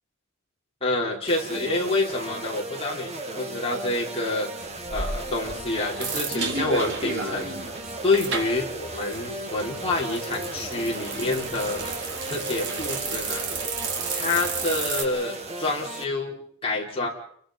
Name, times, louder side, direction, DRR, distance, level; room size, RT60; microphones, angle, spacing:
voice 1, 0.8-4.5 4.9-7.5 8.0-12.0 12.3-13.5 14.1-16.3 16.6-17.1, left 2 dB, 25° left, -2 dB, 4.9 m, -27 dB
sound 1, 1.3-16.0, right 2 dB, 30° right, 2.6 m, -36 dB
sound 2, 4.6-15.0, right 4 dB, 60° right, 3.9 m, -32 dB
30.0 x 22.0 x 5.4 m, 0.64 s
head